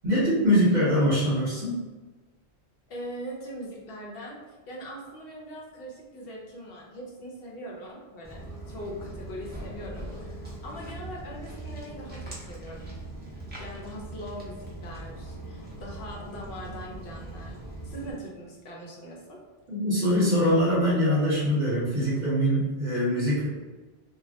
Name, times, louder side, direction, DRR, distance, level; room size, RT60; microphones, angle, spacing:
voice 1, 0.0-1.8 19.7-23.5, equal, 50° right, -8 dB, 1.0 m, -23 dB
voice 2, 2.9-8.4 8.7-12.9 13.6-17.6 17.8-19.4, equal, 70° left, -3 dB, 0.8 m, -41 dB
Walk footsteps, 8.2-18.1, right 2 dB, 15° right, 0.4 m, -40 dB
2.3 x 2.0 x 2.7 m, 1.3 s
omnidirectional pair, 1.1 m